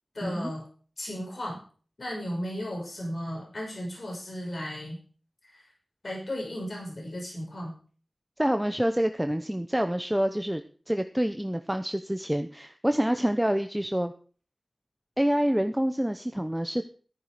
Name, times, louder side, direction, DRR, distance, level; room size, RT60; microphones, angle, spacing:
voice 1, 0.1-0.7 1.0-1.6 2.0-5.0 5.4-5.7 6.0-7.7, equal, 60° left, -2 dB, 6.2 m, -35 dB
voice 2, 8.4-14.1 15.2-16.8, equal, 10° right, 7 dB, 0.9 m, -27 dB
13.5 x 10.5 x 5.0 m, 0.42 s
wide cardioid pair, 65°, 0 cm